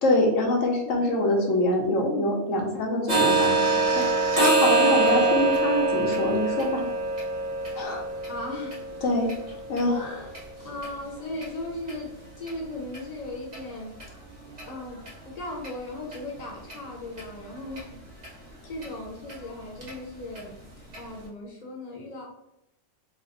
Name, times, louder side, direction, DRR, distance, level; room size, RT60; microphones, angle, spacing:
voice 1, 0.0-3.9 4.4-6.9 7.7-8.0 9.0-9.3 9.7-10.2, left 1 dB, 75° left, 1 dB, 1.1 m, -25 dB
sound 1, 3.1-10.9 11.3-11.5 11.9-12.0 12.5-12.6 12.9-13.0 13.5-13.6 14.0-14.1 14.6-14.7 15.1-15.2 15.6-15.7 16.1-16.2 16.7-16.8 17.2-17.3 17.8-17.9 18.2-18.3 18.8-18.9 19.3-19.4 19.8-19.9 20.4-20.5 20.9-21.0, right 3 dB, 35° right, 1.0 m, -25 dB
voice 2, 8.3-8.8 9.8-10.3 10.6-14.0 14.6-18.0 18.3-20.5 20.9-22.2, left 2 dB, 40° left, -3 dB, 0.7 m, -37 dB
3.2 x 2.0 x 3.7 m, 0.83 s
omnidirectional pair, 1.3 m